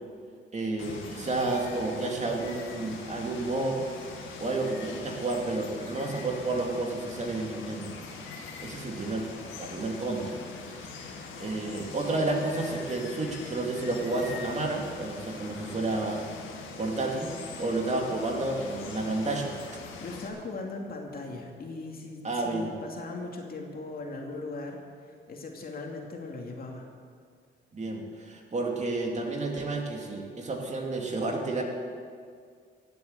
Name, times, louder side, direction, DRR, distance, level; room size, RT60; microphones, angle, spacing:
voice 1, 0.5-3.8 4.4-7.9 8.6-9.3 9.6-10.4 11.4-16.2 16.8-17.3 17.6-19.5 22.2-22.7 27.7-31.6, right 2 dB, 35° right, 1 dB, 2.6 m, -31 dB
Water, 0.8-20.3, left 4 dB, 80° left, 2.1 m, -42 dB
voice 2, 20.0-26.9, left 3 dB, 50° left, 1 dB, 2.6 m, -39 dB
15.5 x 8.3 x 8.2 m, 2.1 s
cardioid pair, 90°, 20 cm